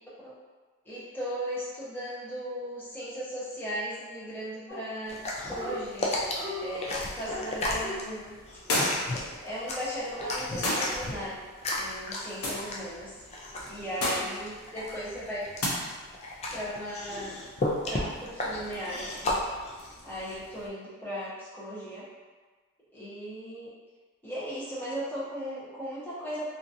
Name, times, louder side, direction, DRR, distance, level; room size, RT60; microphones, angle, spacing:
voice 1, 0.8-6.1 6.6-8.4 9.4-11.4 11.7-13.2 13.7-15.5 16.5-17.4 17.8-19.4 20.0-22.1 22.9-23.7 24.2-26.4, equal, 10° left, -10 dB, 0.8 m, -37 dB
Dog, 4.7-5.2 5.4-5.8 6.1-9.5 10.1-11.1, equal, 10° right, 1.3 m, -40 dB
sound 1, 5.1-20.7, left 1 dB, 30° left, 0.3 m, -35 dB
sound 2, 8.7-9.2 10.6-11.0 12.4-12.7 14.0-14.3 15.6-15.8, left 1 dB, 80° left, 0.6 m, -28 dB
2.8 x 2.5 x 2.5 m, 1.4 s
head